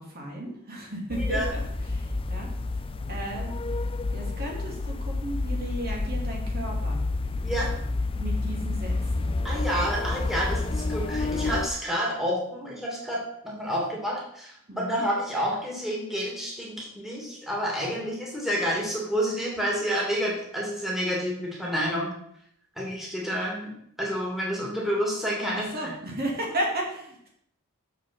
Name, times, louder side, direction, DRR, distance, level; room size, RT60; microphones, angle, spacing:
voice 1, 0.0-1.6 1.9-2.5 3.1-3.6 4.1-7.0 8.2-9.4 14.7-15.0 25.6-27.2, right 1 dB, 45° right, -1 dB, 2.4 m, -34 dB
sound 1, 1.1-11.7, left 2 dB, 25° left, 0.4 m, -29 dB
voice 2, 9.4-13.2 13.4-22.1 22.8-23.7 24.0-26.2, equal, ahead, -3 dB, 2.4 m, -29 dB
7.0 x 6.6 x 6.1 m, 0.70 s
head